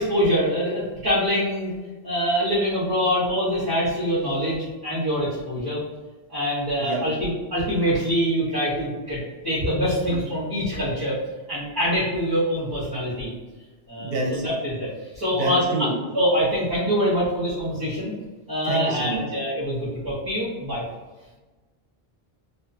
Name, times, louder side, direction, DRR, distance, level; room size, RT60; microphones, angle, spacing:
voice 1, 0.0-1.7 2.0-5.8 6.3-11.1 11.5-13.3 13.9-15.9 16.1-18.1 18.5-20.8, equal, 25° right, -11 dB, 0.9 m, -24 dB
voice 2, 14.0-14.4 15.3-16.0 18.6-19.2, right 1 dB, 70° right, -1 dB, 0.8 m, -27 dB
2.6 x 2.2 x 2.6 m, 1.2 s
omnidirectional pair, 1.0 m